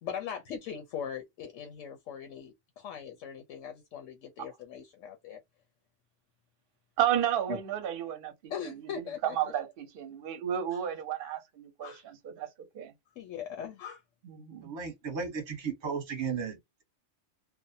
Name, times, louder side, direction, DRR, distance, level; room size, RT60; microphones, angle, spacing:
voice 1, 0.0-5.4 8.5-9.4 10.7-10.8 11.8-12.1 13.2-14.0, left 8 dB, 80° left, 0.9 m, -40 dB
voice 2, 7.0-12.5 12.7-12.9 14.2-14.7, right 10 dB, 55° right, 0.7 m, -33 dB
voice 3, 14.6-16.8, right 6 dB, 25° right, 0.8 m, -35 dB
2.6 x 2.0 x 2.6 m
omnidirectional pair, 1.3 m